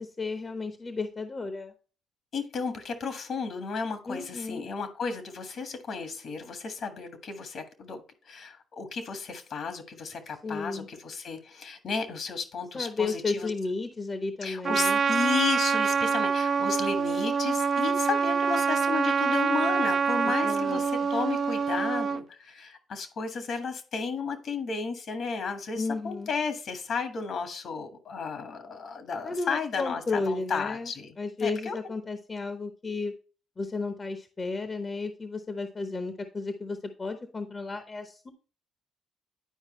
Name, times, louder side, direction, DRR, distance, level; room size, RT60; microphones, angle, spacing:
voice 1, 0.0-1.7 4.1-4.7 10.4-10.9 12.7-15.0 20.2-20.8 25.7-26.3 29.2-30.9 31.2-33.1 33.6-38.3, left 3 dB, 30° left, 8 dB, 0.9 m, -33 dB
voice 2, 2.3-8.0 8.3-13.5 14.4-31.1 31.4-31.8, left 5 dB, 60° left, 8 dB, 1.6 m, -33 dB
Trumpet, 14.6-22.2, right 6 dB, 50° right, 0.5 m, -26 dB
10.0 x 4.8 x 3.1 m, 0.37 s
cardioid pair, 90°, 0 cm